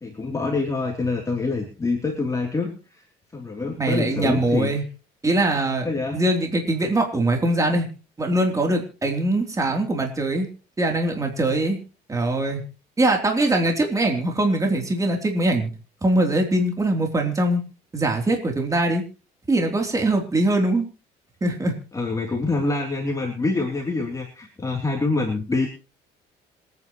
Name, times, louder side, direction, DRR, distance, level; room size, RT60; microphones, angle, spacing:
voice 1, 0.0-3.0 3.3-4.7 5.8-6.2 21.9-25.7, left 3 dB, 20° left, 0 dB, 3.3 m, -26 dB
voice 2, 3.8-4.8 5.2-5.9 6.1-7.9 8.2-10.5 10.8-11.8 12.1-12.6 13.0-15.7 16.0-17.6 17.9-19.0 19.5-20.9 21.4-21.7, right 2 dB, 20° right, 2 dB, 3.4 m, -22 dB
26.5 x 9.7 x 3.1 m, 0.35 s
cardioid pair, 110°, 17 cm